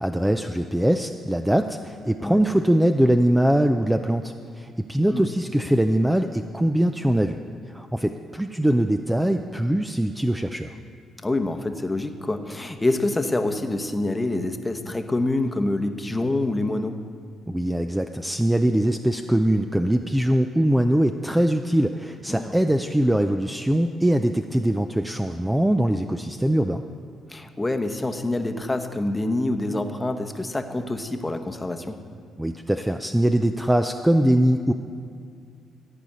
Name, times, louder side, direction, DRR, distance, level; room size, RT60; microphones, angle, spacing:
voice 1, 0.0-7.4 7.7-10.7 17.5-26.8 32.4-34.7, right 1 dB, 5° right, 6 dB, 0.4 m, -22 dB
voice 2, 11.2-17.0 22.3-22.5 27.3-32.0, left 2 dB, 15° left, 7 dB, 0.9 m, -26 dB
14.5 x 5.0 x 9.1 m, 2.3 s
cardioid pair, 90°, 0 cm